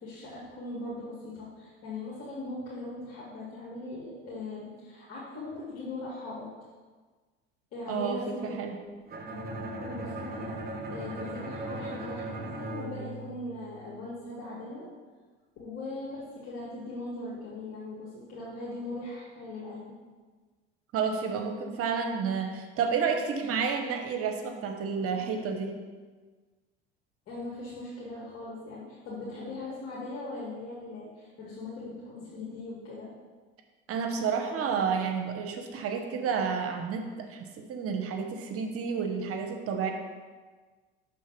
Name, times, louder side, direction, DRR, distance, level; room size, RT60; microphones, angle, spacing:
voice 1, 0.0-6.5 7.7-8.6 9.7-10.6 10.9-14.9 15.6-19.9 27.3-33.1, left 2 dB, 55° left, -7 dB, 1.9 m, -40 dB
voice 2, 7.9-8.7 20.9-25.7 33.9-39.9, right 6 dB, 50° right, 4 dB, 0.9 m, -30 dB
Bowed string instrument, 9.1-14.0, right 1 dB, 30° right, 1.3 m, -38 dB
6.3 x 3.8 x 5.8 m, 1.4 s
hypercardioid pair, 75°, 30 cm